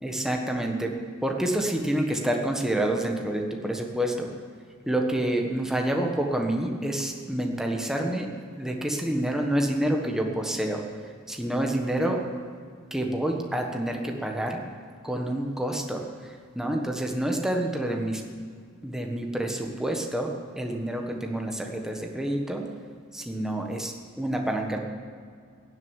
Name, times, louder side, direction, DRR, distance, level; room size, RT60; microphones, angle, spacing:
voice 1, 0.0-0.9 1.2-4.3 4.9-8.3 8.6-10.8 11.3-12.2 12.9-14.6 15.0-16.0 16.5-18.2 18.8-22.6 23.1-24.8, right 1 dB, ahead, 1 dB, 1.4 m, -28 dB
16.5 x 8.0 x 9.9 m, 2.2 s
head